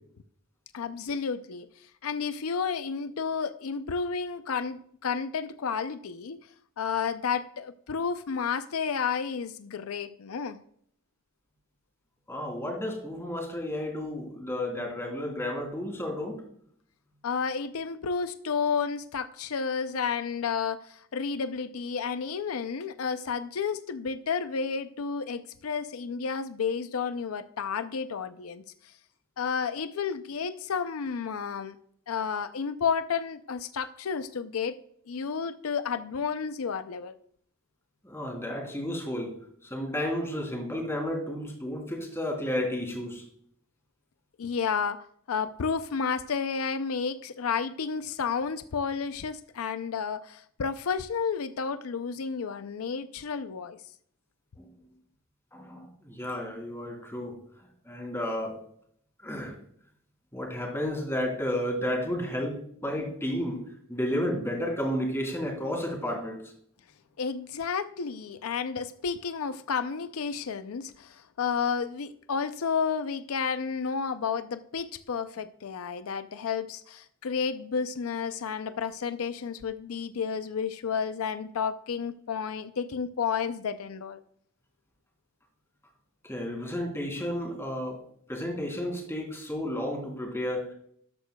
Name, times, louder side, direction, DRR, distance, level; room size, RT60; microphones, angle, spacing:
voice 1, 0.7-6.4 6.8-10.6 17.2-28.9 29.4-31.8 32.1-37.1 44.4-53.8 67.2-84.2, left 6 dB, 85° left, 0.5 m, -31 dB
voice 2, 12.3-16.4 38.0-39.3 39.6-43.2 54.6-54.7 55.5-58.6 59.2-59.5 60.3-63.6 63.9-66.4 86.2-88.0 88.3-90.7, left 1 dB, 10° left, 3.1 m, -32 dB
13.0 x 11.0 x 2.3 m
head